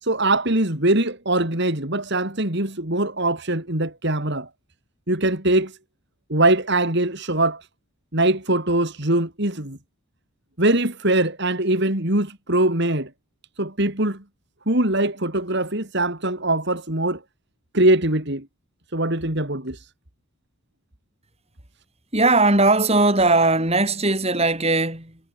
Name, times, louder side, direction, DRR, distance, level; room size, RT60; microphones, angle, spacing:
voice 1, 0.0-4.5 5.1-5.8 6.3-7.7 8.1-9.8 10.6-13.1 13.6-14.2 14.7-17.2 17.7-18.5 18.9-19.9, right 1 dB, 50° right, 3.5 m, -22 dB
voice 2, 22.1-25.2, right 2 dB, 25° right, 7.7 m, -19 dB
head